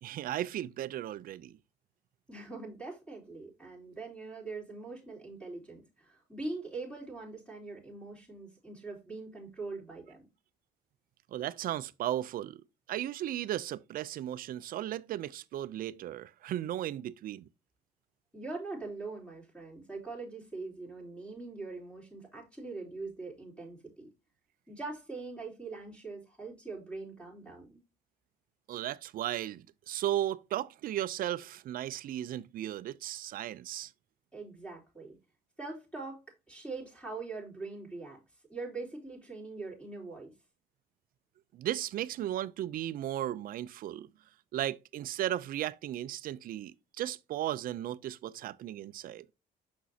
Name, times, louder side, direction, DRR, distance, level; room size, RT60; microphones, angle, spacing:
voice 1, 0.0-1.6 11.3-17.5 28.7-33.9 41.5-44.1 44.5-49.3, right 12 dB, 55° right, 0.5 m, -35 dB
voice 2, 2.3-10.2 18.3-24.1 24.7-27.8 34.3-35.2 35.6-38.2 38.5-40.3, right 3 dB, 5° left, 3.7 m, -42 dB
6.1 x 6.1 x 2.8 m
cardioid pair, 110°, 17 cm